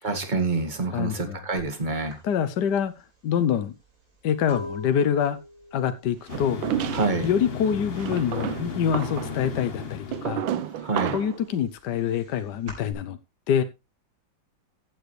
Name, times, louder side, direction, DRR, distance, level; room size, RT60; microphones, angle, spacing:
voice 1, 0.0-2.2 6.9-7.3 10.8-11.2, right 3 dB, 25° right, 1.9 m, -27 dB
voice 2, 0.9-1.4 2.2-2.9 3.2-3.7 4.2-5.4 5.7-6.6 6.9-10.4 11.1-13.2 13.5-13.6, left 8 dB, 65° left, 1.3 m, -25 dB
sound 1, 1.6-1.7 2.1-7.8 8.0-8.5 8.8-10.0 10.4-12.9, left 1 dB, 70° right, 5.6 m, -43 dB
sound 2, 6.3-10.7, left 5 dB, 40° left, 0.9 m, -35 dB
sound 3, 6.3-7.3 8.0-11.4, right 10 dB, 85° right, 1.5 m, -31 dB
14.5 x 8.0 x 3.2 m
omnidirectional pair, 2.1 m